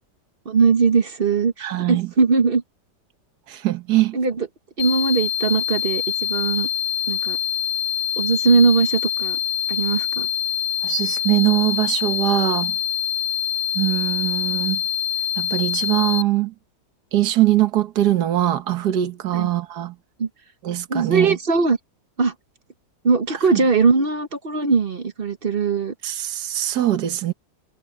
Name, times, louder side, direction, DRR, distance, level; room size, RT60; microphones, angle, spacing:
voice 1, 0.4-2.6 4.1-4.5 4.8-6.7 7.1-7.4 8.2-9.4 9.7-10.3 19.3-19.5 20.2-20.3 20.9-21.8 22.2-22.3 23.0-25.9, right 5 dB, 40° right, 1.1 m, -20 dB
voice 2, 1.6-2.1 3.5-4.2 10.8-12.8 13.8-14.8 15.4-16.5 17.1-19.9 20.6-21.4 26.0-27.3, right 14 dB, 75° right, 1.7 m, -22 dB
sound 1, 4.8-16.2, left 10 dB, 80° left, 1.5 m, -25 dB
omnidirectional pair, 1.8 m